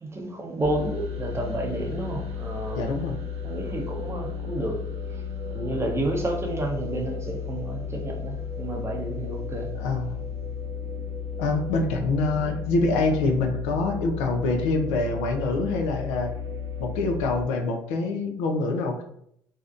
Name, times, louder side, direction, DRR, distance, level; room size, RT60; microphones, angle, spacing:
voice 1, 0.0-2.8 3.4-4.8 5.5-9.7, right 1 dB, 25° right, 2 dB, 0.6 m, -30 dB
sound 1, 0.6-17.5, left 6 dB, 75° right, 0.4 m, -34 dB
voice 2, 2.7-3.2 9.8-10.2 11.4-16.3 16.8-19.0, left 3 dB, 90° left, 4 dB, 0.4 m, -25 dB
2.5 x 2.1 x 2.4 m, 0.70 s
supercardioid pair, 80°, 11 cm